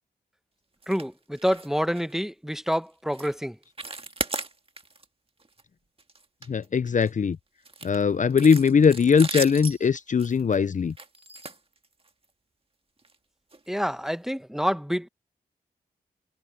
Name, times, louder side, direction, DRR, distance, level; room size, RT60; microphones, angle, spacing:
sound 1, 0.8-1.1 1.3-1.7 1.9-2.1 2.6-2.8 3.1-3.3 3.6-5.0 5.4-5.6 6.0-7.1 7.6-12.2 13.0-13.1 13.5-13.6 14.0-14.1, right 3 dB, 35° right, 1.9 m, -36 dB
voice 1, 0.9-3.6 13.7-15.1, equal, ahead, 1.0 m, -27 dB
voice 2, 6.5-7.4 7.8-10.9, left 6 dB, 50° left, 0.6 m, -20 dB
cardioid pair, 50°, 17 cm